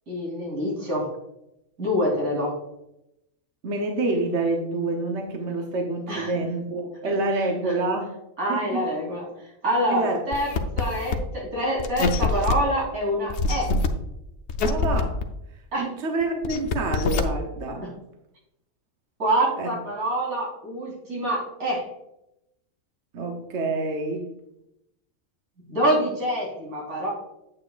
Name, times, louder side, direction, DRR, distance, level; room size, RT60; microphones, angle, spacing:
voice 1, 0.1-1.1 1.8-2.6 6.1-6.3 8.4-9.3 9.6-13.7 15.7-15.8 19.2-21.9 25.6-27.1, equal, 85° right, -4 dB, 3.8 m, -26 dB
voice 2, 3.6-8.1 8.5-8.9 9.9-10.2 14.6-15.2 15.8-17.9 19.6-19.7 23.1-24.3, right 2 dB, 55° right, 2 dB, 1.1 m, -27 dB
sound 1, 10.3-11.2 11.8-12.5 13.3-13.9 14.5-15.2 16.2-17.2, left 4 dB, 60° left, 0.9 m, -24 dB
8.6 x 8.5 x 2.4 m, 0.86 s
omnidirectional pair, 1.5 m